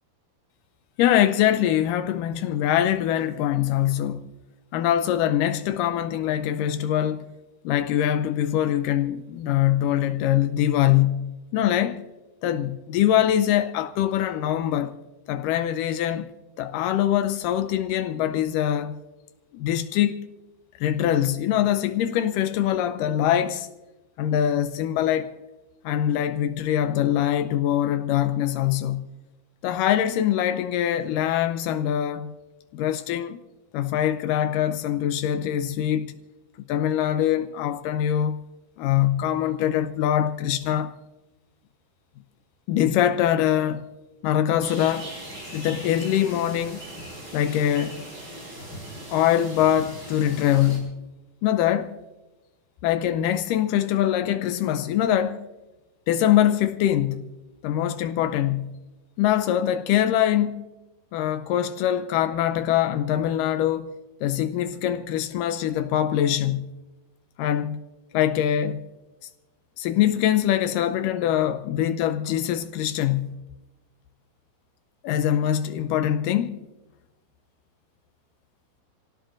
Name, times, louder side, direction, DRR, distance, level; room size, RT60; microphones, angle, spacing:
voice 1, 1.0-4.3 4.7-7.3 7.7-12.0 12.4-15.0 15.3-16.3 16.6-19.0 19.5-20.3 20.8-23.7 24.2-25.3 25.9-29.1 29.6-32.3 32.7-33.4 33.7-36.1 36.7-38.4 38.8-40.9 42.7-43.9 44.2-45.1 45.5-46.8 47.3-48.0 49.1-51.0 51.4-52.0 52.8-55.5 56.1-57.3 57.6-58.8 59.2-60.7 61.1-63.9 64.2-66.7 67.4-67.8 68.1-68.9 69.8-73.4 75.0-76.7, left 11 dB, 85° left, 1.9 m, -23 dB
sound 1, 44.6-50.8, right 1 dB, 25° right, 5.5 m, -40 dB
27.5 x 17.5 x 2.5 m
omnidirectional pair, 4.5 m